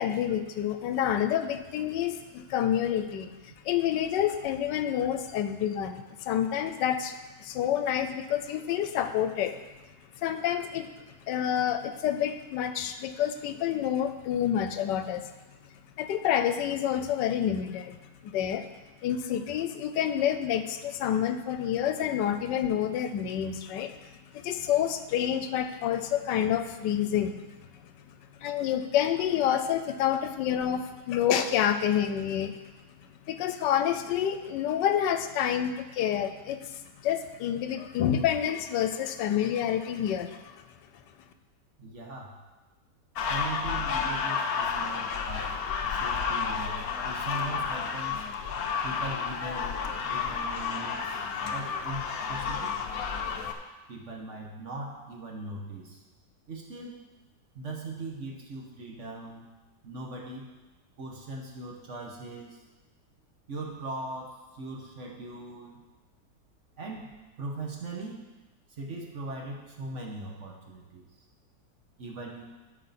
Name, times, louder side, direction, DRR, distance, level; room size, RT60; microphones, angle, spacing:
voice 1, 0.0-3.3 3.6-9.6 10.2-10.9 11.3-15.3 16.0-18.0 18.2-18.7 19.0-24.0 24.3-27.4 28.4-32.6 33.3-40.6, left 10 dB, 85° left, 9 dB, 1.3 m, -28 dB
voice 2, 41.8-42.4 43.3-45.6 45.9-48.3 48.8-52.7 53.9-56.0 56.5-57.0 57.5-59.5 59.8-60.5 61.0-62.6 63.5-65.8 66.8-68.2 68.7-71.1 72.0-72.4, right 2 dB, 45° right, 0 dB, 1.3 m, -40 dB
sound 1, 43.2-53.5, left 6 dB, 65° left, 1.1 m, -31 dB
12.5 x 4.8 x 4.2 m, 1.2 s
omnidirectional pair, 1.9 m